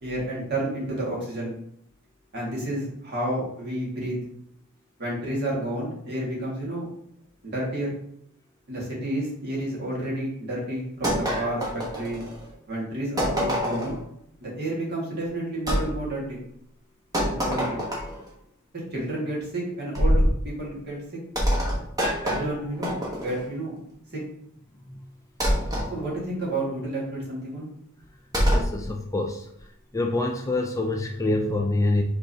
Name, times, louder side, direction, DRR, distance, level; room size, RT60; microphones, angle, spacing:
voice 1, 0.0-1.5 2.3-4.2 5.0-6.9 7.4-8.0 8.7-12.2 12.7-14.0 14.4-16.4 17.2-17.8 18.9-21.0 22.2-23.8 24.1-24.2 25.9-27.7, right 1 dB, 50° right, -4 dB, 1.8 m, -30 dB
sound 1, 11.0-12.5 13.2-14.0 15.7-15.9 17.1-18.3 20.0-20.4 21.4-23.5 25.4-25.9 28.3-28.7, equal, 15° right, 1.1 m, -25 dB
voice 2, 28.5-29.5 29.9-32.0, left 2 dB, 15° left, 2 dB, 0.3 m, -26 dB
5.2 x 3.6 x 2.7 m, 0.71 s
head